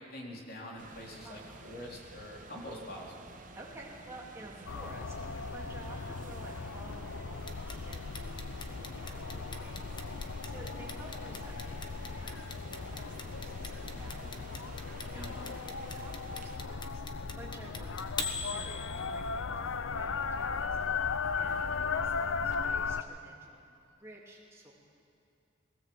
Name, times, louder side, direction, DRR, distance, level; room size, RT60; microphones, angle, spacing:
voice 1, 0.1-3.1 15.1-15.4, left 1 dB, 50° left, -2 dB, 3.5 m, -44 dB
sound 1, 0.8-16.6, right 3 dB, 40° right, 1.0 m, -52 dB
voice 2, 1.2-1.8 3.5-15.3 15.6-24.7, right 1 dB, 15° right, -4 dB, 3.0 m, -52 dB
sound 2, 4.7-23.0, left 5 dB, 85° left, 0.6 m, -37 dB
Clock, 7.5-19.4, left 4 dB, 25° left, 1.0 m, -40 dB
19.5 x 17.0 x 7.7 m, 2.6 s
head